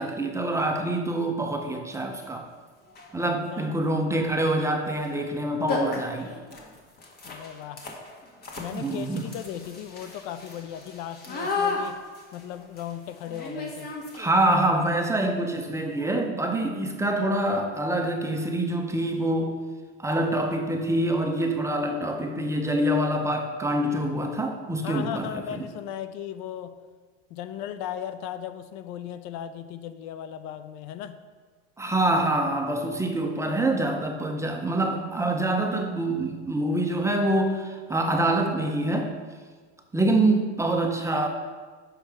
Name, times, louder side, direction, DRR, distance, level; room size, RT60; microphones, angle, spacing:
voice 1, 0.0-2.5 3.1-6.3 8.7-9.2 14.1-19.6 20.0-25.6 31.8-39.1 39.9-41.3, right 1 dB, 10° right, 3 dB, 0.6 m, -25 dB
sound 1, 2.2-2.3 2.9-3.2 4.9-5.1 5.3-5.4 5.7-14.5, left 4 dB, 30° left, 1.4 m, -35 dB
voice 2, 3.2-3.8 7.2-7.8 8.6-12.0 12.3-13.9 24.8-26.7 27.3-31.2, left 10 dB, 55° left, 10 dB, 0.5 m, -37 dB
6.6 x 4.5 x 4.7 m, 1.5 s
supercardioid pair, 105°, 34 cm